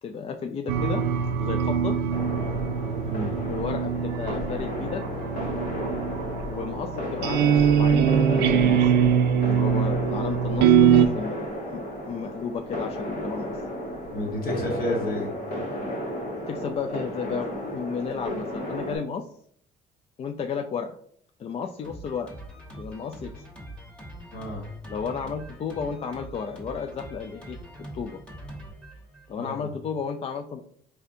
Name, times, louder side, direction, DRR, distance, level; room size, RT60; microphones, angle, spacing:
voice 1, 0.0-1.0 1.4-2.0 3.5-5.0 6.5-8.9 9.5-11.4 11.7-13.6 16.5-19.3 20.2-21.0 21.4-22.3 22.8-23.3 24.9-27.6 27.9-28.2 29.3-30.6, left 6 dB, 35° left, 5 dB, 0.3 m, -33 dB
sound 1, 0.7-11.1, right 8 dB, 80° right, 0.4 m, -23 dB
sound 2, 2.1-19.0, left 1 dB, 85° left, 1.4 m, -33 dB
voice 2, 3.0-3.4 14.1-15.3 24.3-24.7 29.4-29.7, left 1 dB, 60° left, 1 dB, 1.3 m, -30 dB
Drum kit, 21.8-29.6, right 1 dB, 5° left, 1.1 m, -43 dB
4.1 x 3.3 x 2.6 m, 0.63 s
cardioid pair, 110°, 17 cm